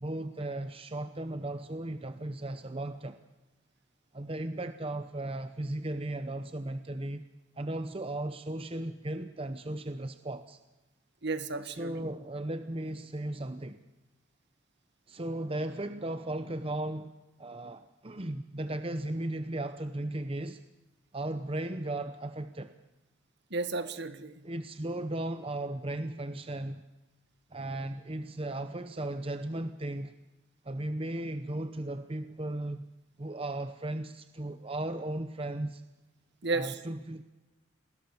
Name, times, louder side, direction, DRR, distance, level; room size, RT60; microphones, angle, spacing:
voice 1, 0.0-3.2 4.1-7.3 7.6-10.6 11.6-13.8 15.1-17.1 17.4-20.6 21.1-22.7 24.4-26.8 27.5-30.1 30.6-32.9 33.2-35.8 36.5-37.2, right 1 dB, 25° right, 10 dB, 0.8 m, -36 dB
voice 2, 11.2-12.1 23.5-24.4 36.4-36.8, right 3 dB, 55° right, 10 dB, 1.8 m, -33 dB
29.0 x 20.5 x 7.2 m, 1.1 s
head